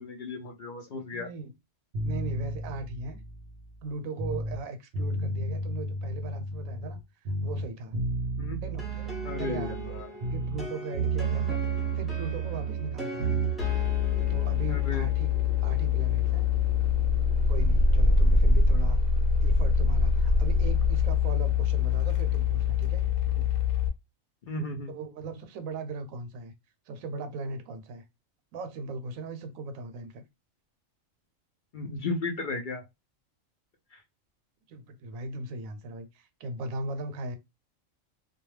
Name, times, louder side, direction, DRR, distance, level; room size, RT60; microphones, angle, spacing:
voice 1, 0.0-1.3 8.4-8.6 9.2-10.1 14.7-15.0 23.3-23.4 24.4-24.9 31.7-32.8 33.9-34.0, left 3 dB, 65° left, 0.4 m, -34 dB
voice 2, 1.1-1.5 2.0-3.2 3.8-7.0 7.4-7.9 8.6-10.0 10.3-11.6 11.9-13.4 14.3-15.3 15.6-16.5 17.5-19.0 19.4-23.1 24.9-26.5 26.9-28.0 28.5-30.2 34.7-37.4, right 3 dB, 80° right, 1.0 m, -38 dB
sound 1, 1.9-4.6 4.9-7.0 7.2-10.7 10.9-13.6, right 3 dB, 55° right, 0.8 m, -32 dB
sound 2, 8.8-18.4, right 2 dB, ahead, 0.6 m, -42 dB
sound 3, 13.6-23.9, left 5 dB, 90° left, 1.0 m, -24 dB
2.2 x 2.2 x 3.1 m
omnidirectional pair, 1.4 m